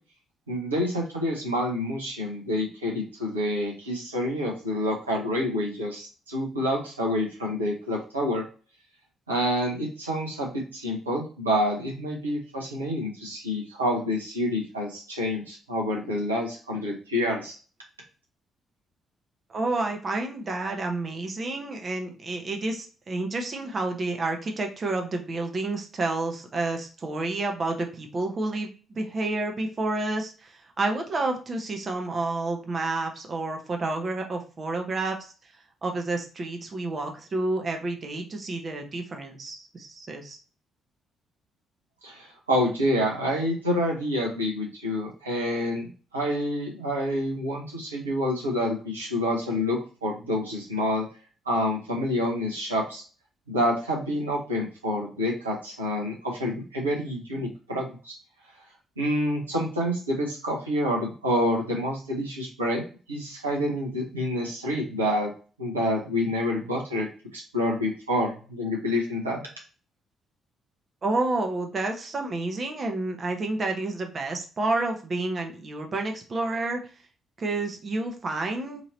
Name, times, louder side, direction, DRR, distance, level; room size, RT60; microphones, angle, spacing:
voice 1, 0.5-8.4 9.3-17.6 42.0-51.1 51.5-53.0 53.5-58.2 59.0-62.8 63.1-65.3 65.6-69.4, equal, 80° right, -2 dB, 0.8 m, -28 dB
voice 2, 19.5-35.3 35.8-40.4 71.0-76.8 77.4-78.8, right 2 dB, 40° right, 3 dB, 0.7 m, -29 dB
2.9 x 2.8 x 4.0 m, 0.37 s
figure-of-eight pair, 40°, 0 cm